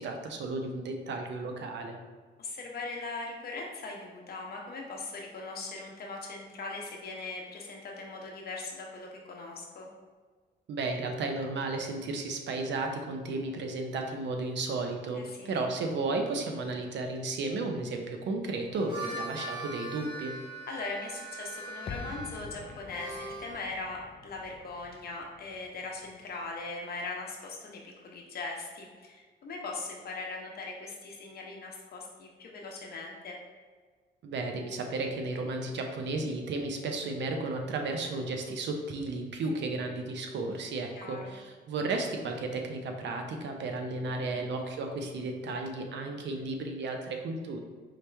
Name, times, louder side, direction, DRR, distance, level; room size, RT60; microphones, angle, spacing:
voice 1, 0.0-2.0 10.7-20.3 34.2-47.6, right 3 dB, 75° right, 4 dB, 0.7 m, -33 dB
voice 2, 2.4-9.9 15.1-15.5 18.9-19.2 20.7-33.4 40.9-41.4 44.1-44.4, left 3 dB, 55° left, 0 dB, 1.0 m, -40 dB
Harmonica, 18.6-23.5, right 2 dB, 25° right, 1.3 m, -41 dB
sound 1, 21.9-26.8 27.1-27.2, left 4 dB, 35° left, 0.4 m, -47 dB
4.8 x 3.0 x 3.3 m, 1.5 s
cardioid pair, 130°, 19 cm